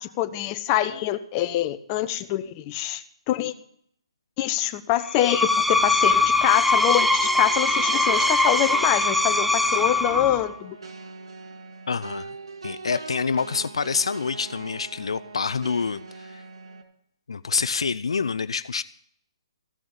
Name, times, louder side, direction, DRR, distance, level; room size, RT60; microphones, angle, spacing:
voice 1, 0.0-3.5 4.4-10.8, left 13 dB, 25° left, 9 dB, 1.0 m, -25 dB
Screech, 5.1-10.5, left 2 dB, ahead, 0.6 m, -21 dB
sound 1, 7.2-16.8, right 4 dB, 80° right, 2.0 m, -41 dB
voice 2, 11.9-12.3 12.6-16.4 17.3-18.8, left 5 dB, 80° left, 14 dB, 0.5 m, -27 dB
15.5 x 6.2 x 8.8 m, 0.66 s
hypercardioid pair, 145°, 3 cm